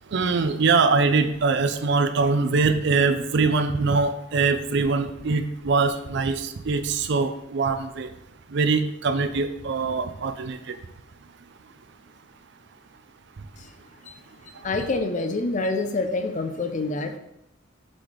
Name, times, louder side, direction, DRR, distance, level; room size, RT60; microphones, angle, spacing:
voice 1, 0.1-8.1 8.5-10.8, right 4 dB, 60° right, 10 dB, 0.5 m, -23 dB
voice 2, 14.6-17.2, left 3 dB, 40° left, 7 dB, 0.6 m, -27 dB
7.6 x 3.3 x 4.0 m, 0.80 s
head